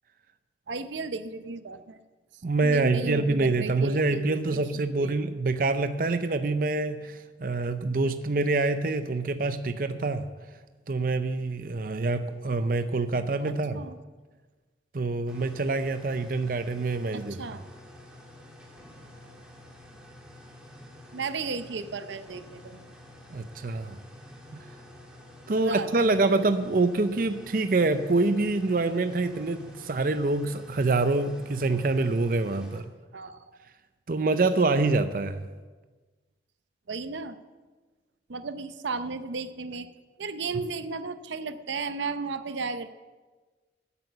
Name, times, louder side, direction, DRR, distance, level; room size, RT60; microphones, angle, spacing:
voice 1, 0.7-2.0 2.6-4.6 5.0-5.1 13.7-14.0 17.4-17.6 21.1-22.8 25.5-26.5 33.1-33.6 36.9-37.4 38.3-39.9 40.2-42.9, right 4 dB, 90° right, 11 dB, 0.7 m, -34 dB
voice 2, 2.4-10.3 10.9-13.8 14.9-17.4 23.3-24.0 25.5-32.9 34.1-35.5, right 3 dB, 50° right, 10 dB, 0.5 m, -26 dB
sound 1, 15.3-32.8, left 1 dB, 5° right, 1.6 m, -49 dB
11.5 x 8.1 x 7.9 m, 1.3 s
head